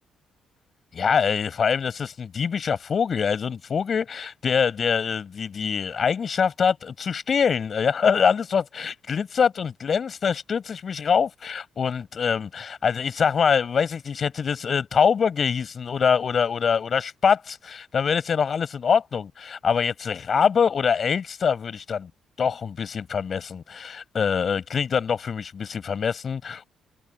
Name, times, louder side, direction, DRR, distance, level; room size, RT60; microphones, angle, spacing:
voice 1, 0.9-22.1 22.4-26.7, left 6 dB, 45° left, 7.4 m, -24 dB
open air
cardioid pair, 90°, 0 cm